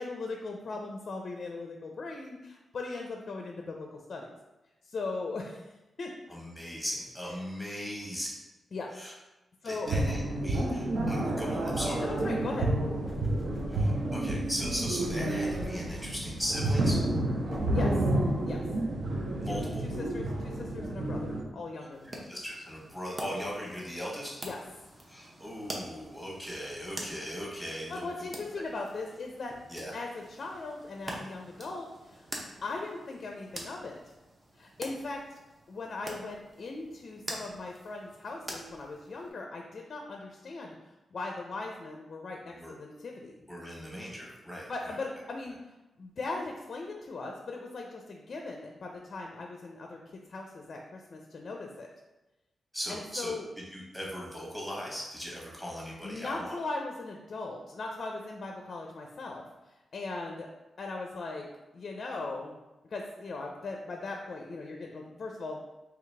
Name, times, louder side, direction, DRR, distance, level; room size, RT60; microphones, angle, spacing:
voice 1, 0.0-4.3 4.8-5.7 6.0-6.1 8.7-8.9 9.6-9.9 12.0-12.7 17.6-17.9 18.5-18.6 19.4-22.3 24.4-24.6 27.9-29.5 29.9-32.2 32.6-34.1 34.6-35.2 35.7-40.8 41.1-43.4 44.7-45.6 46.0-51.9 52.9-53.5 56.0-60.5 60.8-61.5 61.7-62.6 62.9-65.6, left 3 dB, 55° left, 2 dB, 0.4 m, -39 dB
voice 2, 6.3-8.3 8.9-9.1 9.6-12.0 13.7-17.0 19.4-19.8 22.0-24.4 25.1-28.1 28.6-28.7 29.7-29.9 42.6-42.8 43.5-44.7 52.7-53.3 53.7-56.6, equal, 5° right, -3 dB, 1.2 m, -38 dB
sound 1, 9.8-21.4, right 1 dB, 65° right, 0.7 m, -30 dB
sound 2, 13.1-14.0 14.6-15.8 16.3-16.5 16.9-17.1 17.5-17.8 18.5-18.6, left 1 dB, 15° left, 0.7 m, -43 dB
sound 3, 21.9-39.3, right 1 dB, 25° right, 0.7 m, -46 dB
3.9 x 2.9 x 3.3 m, 1.0 s
wide cardioid pair, 110°, 0 cm